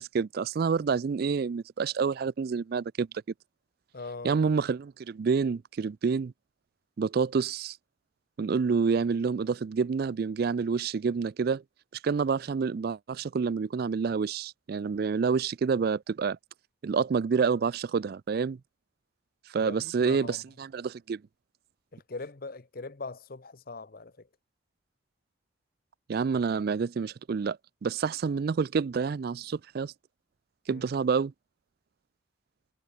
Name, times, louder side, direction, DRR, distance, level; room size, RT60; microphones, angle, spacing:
voice 1, 0.0-3.1 4.2-6.3 7.0-7.8 8.4-11.6 12.0-16.4 16.8-18.6 19.5-21.2 26.1-29.9 30.7-31.3, right 5 dB, 50° right, 0.3 m, -28 dB
voice 2, 3.9-4.3 19.5-20.4 21.9-24.1 30.7-30.9, left 3 dB, 45° left, 0.8 m, -41 dB
head